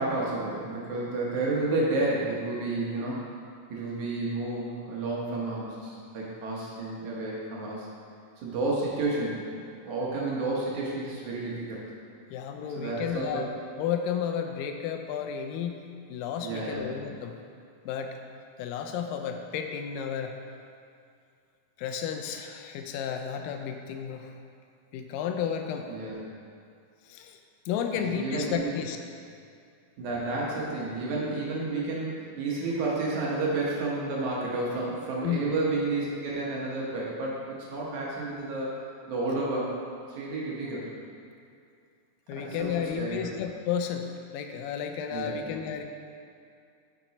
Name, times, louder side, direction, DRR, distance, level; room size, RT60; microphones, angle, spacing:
voice 1, 0.0-3.3 3.7-7.9 8.4-11.8 12.8-13.4 16.4-16.9 25.9-26.1 28.1-28.7 30.0-38.8 39.1-39.7 40.1-40.9 42.3-43.3 45.1-45.4, right 2 dB, 65° right, -5 dB, 2.3 m, -31 dB
voice 2, 12.3-13.5 13.8-15.8 16.1-17.4 17.9-18.2 18.6-20.4 21.8-24.3 24.9-25.9 27.1-27.4 27.7-29.0 35.2-35.5 42.3-44.1 44.3-45.8, left 8 dB, 85° left, 5 dB, 2.2 m, -32 dB
7.5 x 6.1 x 4.1 m, 2.4 s
omnidirectional pair, 4.0 m